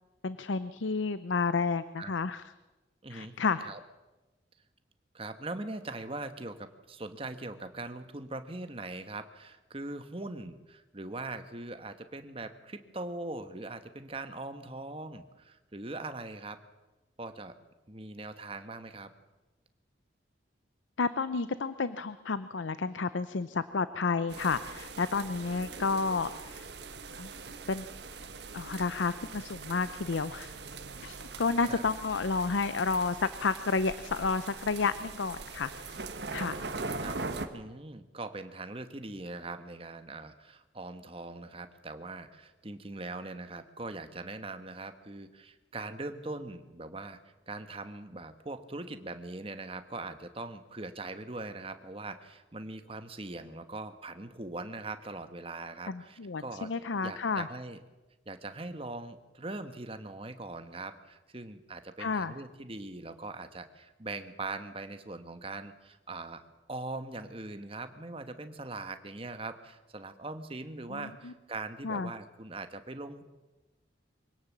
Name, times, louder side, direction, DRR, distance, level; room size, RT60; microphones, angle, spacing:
voice 1, 0.2-2.4 3.1-3.7 21.0-26.6 27.2-27.3 27.7-27.8 28.5-30.6 31.0-36.0 36.3-36.6 55.9-57.5 62.0-62.3 70.9-71.3 71.8-72.1, left 4 dB, 80° left, 14 dB, 0.6 m, -31 dB
voice 2, 3.0-3.8 5.1-16.6 17.2-17.5 17.9-19.1 31.6-31.8 37.0-37.2 37.5-47.2 47.5-56.7 57.0-57.8 58.3-66.4 66.7-73.2, right 2 dB, 30° right, 9 dB, 1.2 m, -41 dB
sound 1, 24.3-37.5, right 3 dB, 60° right, 1.4 m, -42 dB
23.5 x 17.5 x 7.3 m, 1.1 s
head